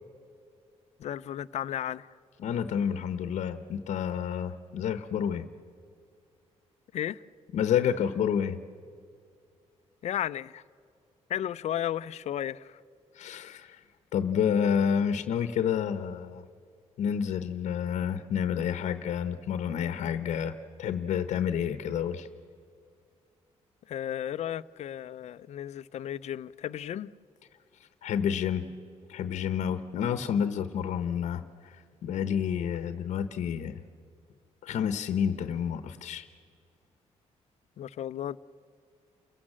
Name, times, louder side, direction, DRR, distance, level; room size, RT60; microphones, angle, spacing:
voice 1, 1.0-2.1 6.9-7.2 10.0-10.6 11.3-12.8 23.9-27.1 37.8-38.4, left 11 dB, 70° left, 0.6 m, -34 dB
voice 2, 2.4-5.4 7.5-8.6 13.1-13.8 14.1-16.4 17.0-22.3 28.0-28.7 29.1-33.8 34.6-36.3, left 8 dB, 85° left, 0.9 m, -29 dB
29.0 x 16.5 x 7.5 m
cardioid pair, 115°, 12 cm